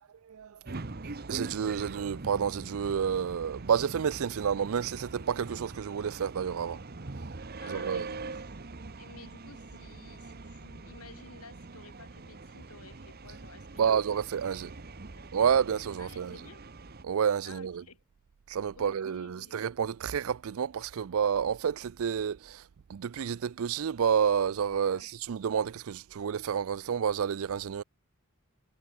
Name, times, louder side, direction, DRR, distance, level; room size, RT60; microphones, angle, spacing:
voice 1, 0.2-0.8 1.3-6.8 7.7-8.1 13.8-14.7 15.3-16.4 17.0-17.8 18.5-22.6 22.9-27.8, right 7 dB, 70° right, 0.4 m, -29 dB
sound 1, 0.7-17.0, right 3 dB, 45° right, 0.9 m, -43 dB
voice 2, 7.6-8.3 9.0-14.0 14.5-14.8 15.2-15.3 16.0-16.6 17.4-18.0 18.8-19.6 24.8-25.1, left 3 dB, 85° left, 5.9 m, -53 dB
head